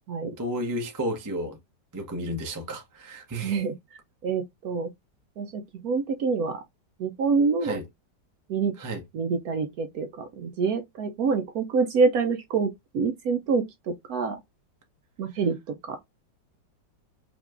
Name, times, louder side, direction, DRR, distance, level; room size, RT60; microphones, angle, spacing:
voice 1, 0.4-1.6 1.9-3.6 7.6-7.8 8.8-9.0, equal, 25° right, 0.4 m, -32 dB
voice 2, 3.4-3.7 4.2-4.9 5.4-6.6 7.0-7.8 8.5-8.7 9.1-14.4 15.2-16.0, right 4 dB, 70° right, 0.9 m, -26 dB
5.1 x 3.0 x 2.4 m
omnidirectional pair, 2.0 m